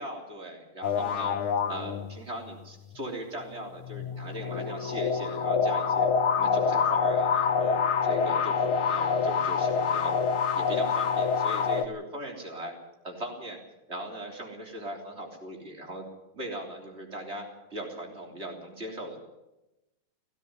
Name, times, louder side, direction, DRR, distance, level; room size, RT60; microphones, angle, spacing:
voice 1, 0.0-1.3 1.7-6.1 6.3-12.7 13.0-13.6 13.9-16.0 16.3-19.2, right 1 dB, 30° right, 0 dB, 3.9 m, -39 dB
sound 1, 0.8-2.5 3.8-11.9, left 6 dB, 75° left, 2.0 m, -26 dB
16.5 x 16.0 x 9.7 m, 0.96 s
omnidirectional pair, 2.4 m